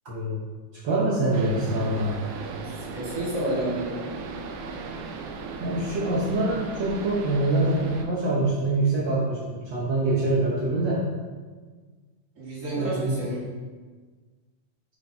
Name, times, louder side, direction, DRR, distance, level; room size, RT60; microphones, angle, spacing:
voice 1, 0.1-0.4 0.8-2.2 5.6-11.0 12.8-13.3, right 2 dB, 60° right, -7 dB, 1.2 m, -25 dB
sound 1, 1.3-8.1, right 4 dB, 80° right, 2.1 m, -37 dB
voice 2, 2.6-4.0 12.4-13.5, right 1 dB, 30° right, -7 dB, 1.8 m, -30 dB
8.1 x 6.9 x 2.8 m, 1.4 s
omnidirectional pair, 3.7 m